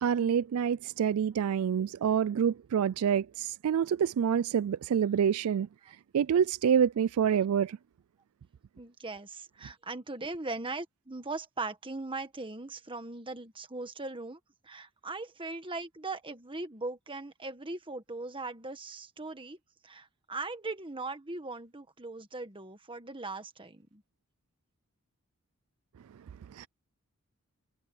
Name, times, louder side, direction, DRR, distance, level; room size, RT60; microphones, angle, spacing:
voice 1, 0.0-5.7 6.1-7.8 26.6-26.7, right 8 dB, 75° right, 0.3 m, -27 dB
voice 2, 8.8-19.6 19.8-24.0, right 3 dB, 25° right, 1.6 m, -39 dB
head